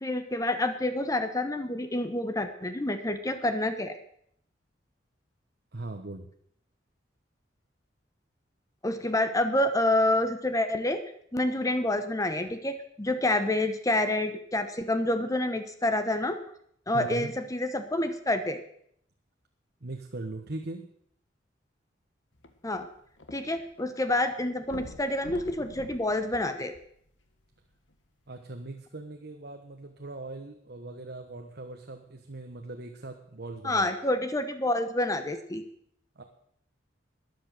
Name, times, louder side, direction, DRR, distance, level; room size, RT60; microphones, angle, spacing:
voice 1, 0.0-4.0 8.8-11.0 11.3-16.4 16.9-18.6 22.6-22.9 23.3-26.7 33.6-35.6, left 1 dB, 20° left, 9 dB, 0.9 m, -28 dB
voice 2, 5.7-6.3 16.9-17.3 19.8-20.9 28.3-33.9 36.2-36.3, right 2 dB, 60° right, 4 dB, 1.2 m, -40 dB
sound 1, 22.4-23.8 24.1-24.2 24.6-27.2 27.9-28.0, left 1 dB, 80° left, 1.7 m, -46 dB
13.0 x 10.5 x 6.5 m, 0.67 s
head